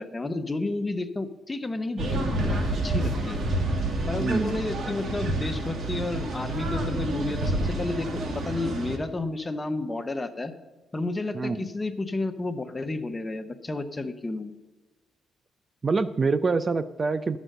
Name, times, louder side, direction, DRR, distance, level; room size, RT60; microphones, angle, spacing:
voice 1, 0.0-3.4 4.1-10.5 10.9-14.5, left 2 dB, 20° left, 9 dB, 0.9 m, -31 dB
sound 1, 2.0-9.0, right 1 dB, 55° right, 1.5 m, -29 dB
voice 2, 4.2-4.5 11.3-11.7 15.8-17.4, right 4 dB, 35° right, 14 dB, 0.4 m, -25 dB
11.5 x 6.2 x 6.6 m, 1.2 s
cardioid pair, 90°, 0 cm